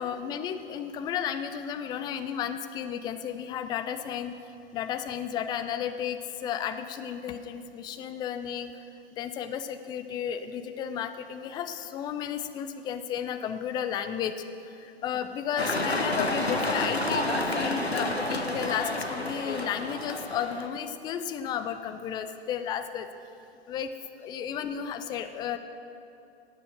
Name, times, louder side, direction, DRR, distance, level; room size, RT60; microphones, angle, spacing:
voice 1, 0.0-4.3 4.7-8.8 9.2-23.1 23.7-23.9 24.2-25.6, left 8 dB, 15° left, 9 dB, 0.4 m, -33 dB
sound 1, 15.6-20.7, left 1 dB, 90° left, 1.2 m, -29 dB
18.0 x 6.9 x 6.3 m, 2.7 s
figure-of-eight pair, 100°, 31 cm